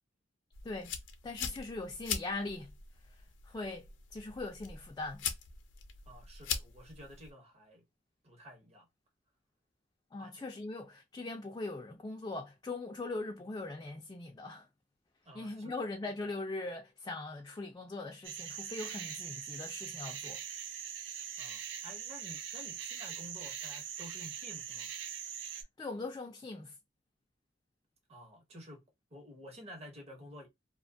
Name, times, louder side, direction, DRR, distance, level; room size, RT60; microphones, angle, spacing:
sound 1, 0.5-7.3, left 7 dB, 80° left, 0.5 m, -42 dB
voice 1, 0.6-1.0 1.2-2.7 3.5-5.2 10.1-14.7 15.3-20.4 25.5-26.7, left 2 dB, 20° left, 0.3 m, -41 dB
voice 2, 6.1-7.8 8.2-8.9 10.2-10.3 15.2-15.7 21.4-24.9 28.1-28.8 29.1-30.5, equal, 35° right, 0.8 m, -51 dB
sound 2, 18.2-25.6, right 8 dB, 80° right, 0.4 m, -42 dB
2.4 x 2.2 x 2.5 m
head